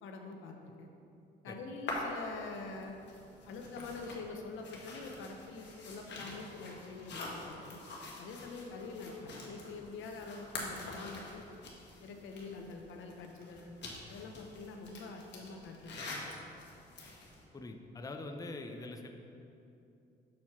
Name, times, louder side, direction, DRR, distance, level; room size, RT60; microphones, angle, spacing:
voice 1, 0.0-0.9 1.4-3.0 3.4-7.8 8.2-11.5 12.0-13.7 14.1-16.3, left 3 dB, 80° left, 3 dB, 0.8 m, -45 dB
sound 1, 1.9-17.4, left 2 dB, 60° left, 1.4 m, -46 dB
voice 2, 17.5-19.1, left 2 dB, 20° left, 4 dB, 0.5 m, -44 dB
6.4 x 4.3 x 5.8 m, 2.7 s
cardioid pair, 90°, 20 cm